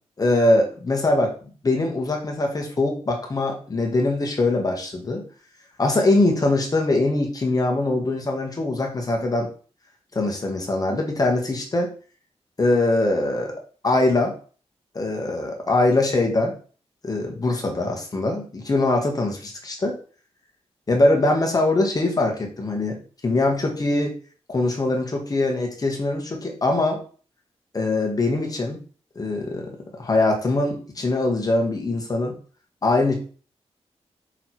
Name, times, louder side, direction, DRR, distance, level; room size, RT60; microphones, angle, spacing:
voice 1, 0.2-1.3 1.6-5.2 5.8-9.5 10.1-11.9 12.6-13.6 13.8-14.3 14.9-16.6 17.0-20.0 20.9-23.0 23.2-24.1 24.5-27.0 27.7-28.8 29.2-29.7 30.0-32.3 32.8-33.1, left 2 dB, 35° left, 1 dB, 2.0 m, -22 dB
6.0 x 3.9 x 4.7 m, 0.39 s
wide cardioid pair, 110°, 11 cm